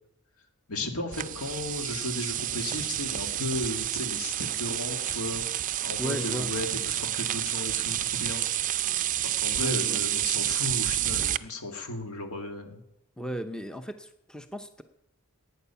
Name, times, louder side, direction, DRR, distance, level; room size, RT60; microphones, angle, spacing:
voice 1, 0.7-5.5 5.8-12.8, left 2 dB, 75° left, 4 dB, 2.1 m, -35 dB
sound 1, 1.1-11.4, right 12 dB, 35° right, 0.4 m, -29 dB
voice 2, 6.0-6.5 9.6-10.0 13.2-14.8, equal, 5° left, 8 dB, 0.6 m, -35 dB
17.0 x 9.3 x 5.6 m, 0.83 s
head